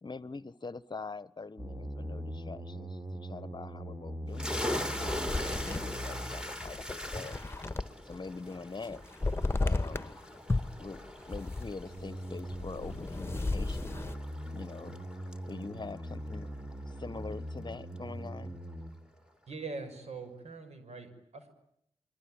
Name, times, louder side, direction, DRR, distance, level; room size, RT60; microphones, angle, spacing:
voice 1, 0.0-7.4 8.0-9.0 9.6-10.2 10.8-14.0 14.5-15.0 15.5-16.5 16.9-18.6, left 3 dB, 40° left, 17 dB, 1.1 m, -44 dB
sound 1, 1.6-6.6 11.8-18.9, equal, 25° right, 4.6 m, -41 dB
sound 2, 4.3-17.7, left 1 dB, 5° right, 3.5 m, -41 dB
sound 3, 5.1-8.2 8.5-10.2 10.5-14.2, left 2 dB, 20° left, 1.6 m, -34 dB
voice 2, 19.5-21.5, right 4 dB, 75° right, 9 dB, 6.0 m, -42 dB
29.0 x 22.5 x 9.0 m, 0.74 s
cardioid pair, 45°, 11 cm